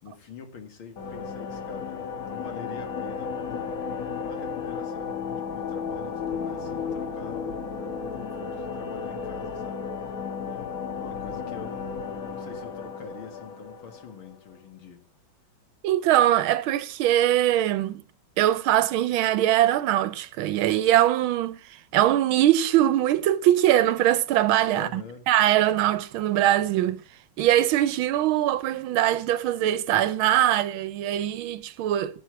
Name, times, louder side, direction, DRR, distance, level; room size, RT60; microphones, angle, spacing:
voice 1, 0.0-3.7 4.2-7.7 8.1-10.2 10.4-15.0 24.7-25.3, left 5 dB, 85° left, 2.6 m, -44 dB
sound 1, 1.0-14.5, left 6 dB, 50° left, 1.5 m, -34 dB
voice 2, 15.8-18.0 18.4-27.0 27.4-32.2, right 12 dB, 90° right, 1.6 m, -22 dB
17.0 x 7.6 x 4.6 m
omnidirectional pair, 2.2 m